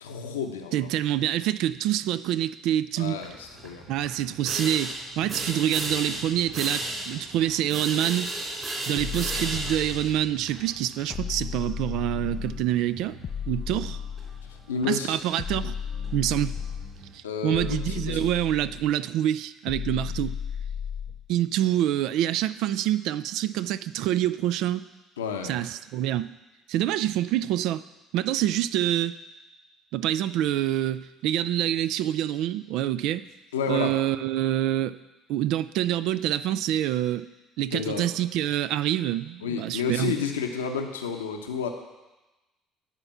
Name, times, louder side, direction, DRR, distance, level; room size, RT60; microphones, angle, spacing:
voice 1, 0.0-0.9 3.0-3.8 14.7-15.2 17.2-18.3 25.2-25.6 33.5-34.0 37.7-38.1 39.4-41.7, left 6 dB, 90° left, 4 dB, 0.8 m, -30 dB
voice 2, 0.7-3.2 3.9-8.3 8.9-13.2 13.5-14.0 14.8-15.7 16.1-16.6 17.1-20.4 21.3-24.9 25.4-26.3 26.7-27.8 28.1-29.1 29.9-33.3 33.7-35.0 35.3-37.3 37.6-40.2, right 12 dB, 65° right, 15 dB, 0.3 m, -26 dB
sound 1, 3.2-17.2, right 2 dB, 35° right, 3.7 m, -36 dB
sound 2, 9.0-10.3 11.1-12.7 13.2-14.7 15.4-17.0 17.5-18.9 19.7-21.3, left 8 dB, 45° left, 0.3 m, -34 dB
10.5 x 4.4 x 7.1 m, 1.1 s
hypercardioid pair, 60°, 0 cm